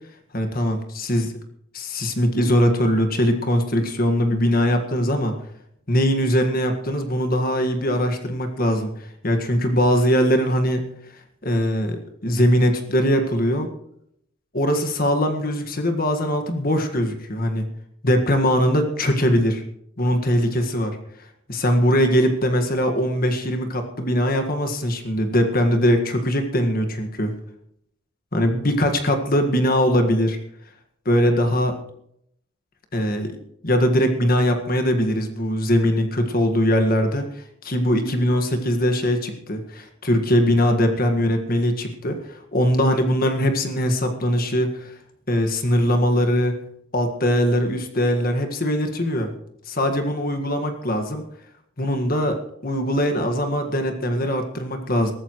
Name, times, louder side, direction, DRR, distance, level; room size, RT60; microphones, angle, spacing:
voice 1, 0.3-1.3 1.7-5.3 5.9-8.9 9.2-10.9 11.4-13.7 14.5-17.7 18.0-19.6 20.0-21.0 21.5-27.3 28.3-30.4 31.0-31.8 32.9-37.3 37.6-44.9 45.3-46.6 46.9-49.3 49.7-51.2 51.8-55.1, equal, 45° left, 5 dB, 1.7 m, -21 dB
22.0 x 14.0 x 3.1 m, 0.73 s
head